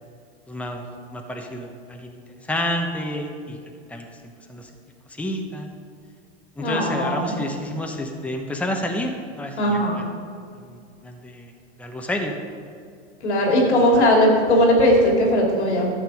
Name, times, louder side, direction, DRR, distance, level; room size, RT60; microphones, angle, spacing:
voice 1, 0.5-0.8 1.1-3.6 3.9-4.1 4.5-4.7 5.1-5.7 6.6-10.0 10.6-11.5 11.8-12.3, left 1 dB, 5° left, 2 dB, 1.1 m, -29 dB
voice 2, 6.6-7.4 9.6-10.0 13.2-15.9, equal, 90° left, 0 dB, 3.1 m, -18 dB
11.5 x 7.5 x 5.1 m, 2.3 s
hypercardioid pair, 105°, 33 cm